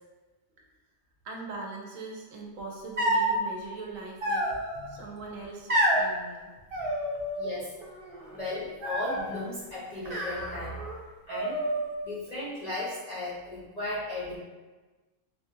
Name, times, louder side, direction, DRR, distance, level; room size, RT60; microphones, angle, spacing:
voice 1, 1.2-4.5 4.9-6.5, right 3 dB, 75° right, -1 dB, 1.0 m, -41 dB
sound 1, 3.0-3.4 4.2-4.9 5.7-6.1 6.7-7.5 7.8-8.4 8.8-9.4 10.1-11.0 11.3-12.0, right 1 dB, 50° right, 0.7 m, -29 dB
voice 2, 7.4-7.7 8.3-10.8 11.3-11.6 12.0-14.4, left 2 dB, 45° left, -10 dB, 0.5 m, -36 dB
3.2 x 2.4 x 2.6 m, 1.2 s
omnidirectional pair, 1.5 m